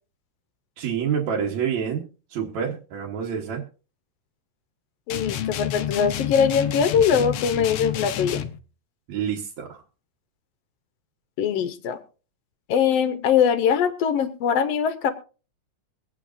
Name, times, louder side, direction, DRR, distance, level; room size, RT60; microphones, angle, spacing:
voice 1, 0.8-3.6 9.1-9.8, right 7 dB, 65° right, -3 dB, 2.5 m, -28 dB
sound 1, 5.1-8.6, left 10 dB, 90° left, 1.2 m, -29 dB
voice 2, 5.1-8.4 11.4-12.0 12.7-15.1, left 7 dB, 70° left, 10 dB, 1.6 m, -22 dB
24.0 x 8.7 x 2.6 m, 0.36 s
omnidirectional pair, 3.6 m